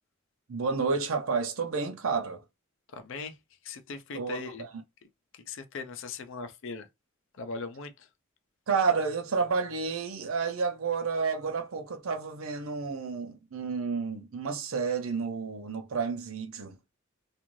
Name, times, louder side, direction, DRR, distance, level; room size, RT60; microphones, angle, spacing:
voice 1, 0.5-2.4 4.1-4.7 8.7-16.8, right 5 dB, 85° right, 0.6 m, -30 dB
voice 2, 2.9-3.3 3.6-4.6 5.3-6.9 7.4-8.1, left 4 dB, 70° left, 0.5 m, -39 dB
2.5 x 2.5 x 3.1 m
head